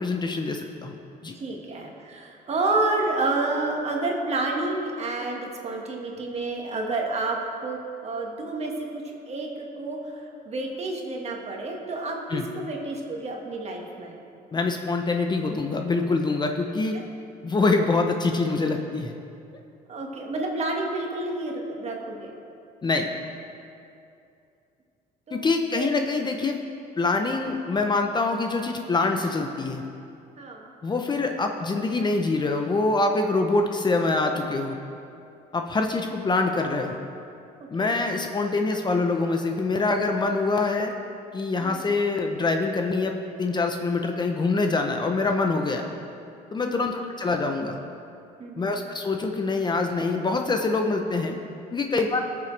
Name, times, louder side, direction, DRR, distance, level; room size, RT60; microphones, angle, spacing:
voice 1, 0.0-1.3 12.3-12.4 14.5-17.0 17.4-19.1 22.8-23.1 25.3-26.6 27.0-29.8 30.8-34.8 35.5-37.0 37.7-40.9 41.3-43.1 43.4-45.9 46.5-47.8 48.6-51.4 51.7-52.2, left 3 dB, 25° left, 4 dB, 0.7 m, -25 dB
voice 2, 1.3-14.1 16.9-17.0 19.9-22.4 25.3-26.0 30.4-30.7 37.8-38.0 41.6-41.9 46.6-46.9 48.4-48.7 51.9-52.1, right 2 dB, 40° right, 0 dB, 1.7 m, -30 dB
18.0 x 6.9 x 3.3 m, 2.6 s
cardioid pair, 110°, 17 cm